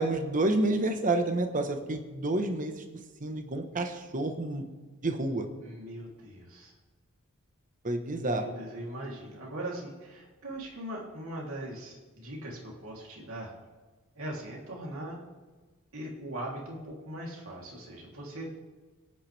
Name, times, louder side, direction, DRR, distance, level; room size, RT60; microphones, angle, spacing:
voice 1, 0.0-2.8 3.2-4.6 5.0-5.5 7.8-8.5, right 2 dB, 35° right, 6 dB, 1.2 m, -29 dB
voice 2, 5.6-6.7 8.1-13.5 14.1-15.2 15.9-18.5, right 1 dB, 65° right, -2 dB, 3.2 m, -40 dB
25.5 x 9.1 x 3.4 m, 1.3 s
head